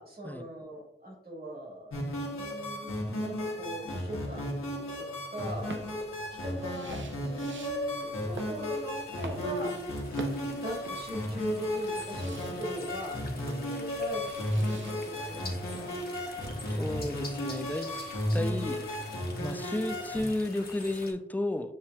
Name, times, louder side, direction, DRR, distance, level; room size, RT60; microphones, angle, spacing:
voice 1, 0.0-2.0 2.3-4.7 5.0-5.8 6.4-9.8 10.6-14.3 14.6-15.9, equal, 45° right, -1 dB, 1.4 m, -40 dB
sound 1, 1.9-20.2, left 1 dB, 85° left, 1.0 m, -34 dB
sound 2, 5.4-14.9, right 4 dB, 65° right, 0.5 m, -48 dB
sound 3, 7.2-21.1, left 3 dB, 45° left, 0.8 m, -48 dB
voice 2, 16.7-17.9 18.3-18.9 19.4-21.8, left 1 dB, 10° left, 9 dB, 0.3 m, -33 dB
7.3 x 2.7 x 2.2 m, 0.83 s
wide cardioid pair, 70°, 21 cm